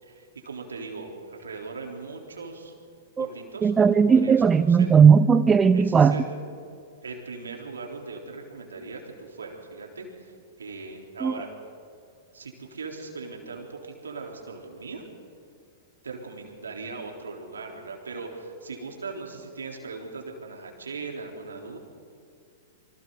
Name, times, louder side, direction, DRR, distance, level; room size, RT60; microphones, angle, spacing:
voice 1, 0.0-2.7 3.2-4.9 5.7-6.5 7.0-11.6 12.3-15.0 16.0-21.8, right 4 dB, 80° right, 1 dB, 3.5 m, -39 dB
voice 2, 3.6-6.1 11.2-11.3, right 6 dB, 20° right, 12 dB, 0.5 m, -17 dB
27.5 x 25.0 x 3.9 m, 2.3 s
figure-of-eight pair, 105°, 0 cm